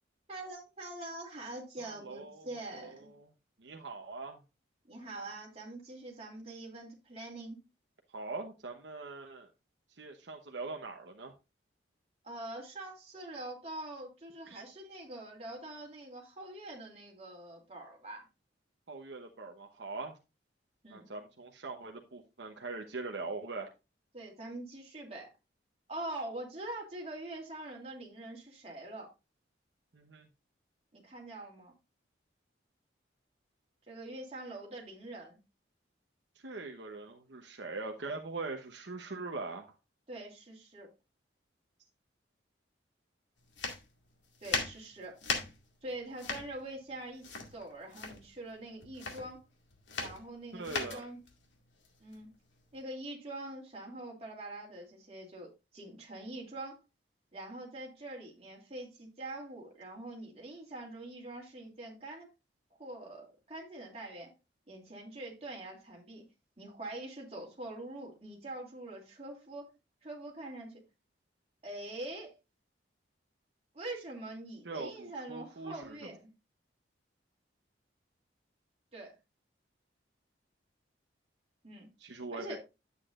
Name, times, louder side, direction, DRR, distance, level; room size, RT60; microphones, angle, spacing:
voice 1, 0.3-3.1 4.9-7.6 12.2-18.3 20.8-21.1 24.1-25.3 25.9-29.1 30.9-31.7 33.9-35.4 40.1-40.9 44.4-45.2 45.8-49.4 50.0-51.2 52.0-52.3 52.7-56.8 57.3-62.3 62.8-64.3 64.7-66.2 66.6-69.7 70.0-70.8 71.6-72.3 73.7-76.2 78.9-79.1 81.6-81.9 82.3-82.6, right 2 dB, 30° right, -1 dB, 2.6 m, -44 dB
voice 2, 1.8-2.5 2.8-3.3 3.6-4.4 8.1-9.5 10.0-11.3 14.5-14.6 18.9-20.2 20.9-23.7 29.9-30.3 36.4-39.7 50.5-51.0 74.6-76.1 82.0-82.6, right 3 dB, 70° right, 3 dB, 0.9 m, -42 dB
sound 1, 43.5-52.8, left 4 dB, 75° left, 2.1 m, -39 dB
10.0 x 8.2 x 2.5 m, 0.26 s
head